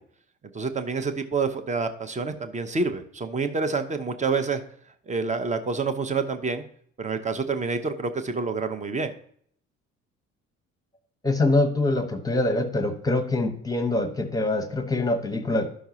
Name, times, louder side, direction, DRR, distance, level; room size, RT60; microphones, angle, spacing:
voice 1, 0.5-4.6 5.1-6.6 7.0-9.1, right 4 dB, 20° right, 8 dB, 0.7 m, -27 dB
voice 2, 11.2-15.8, left 2 dB, 10° left, 8 dB, 1.0 m, -24 dB
12.5 x 5.7 x 2.8 m, 0.63 s
figure-of-eight pair, 50°, 39 cm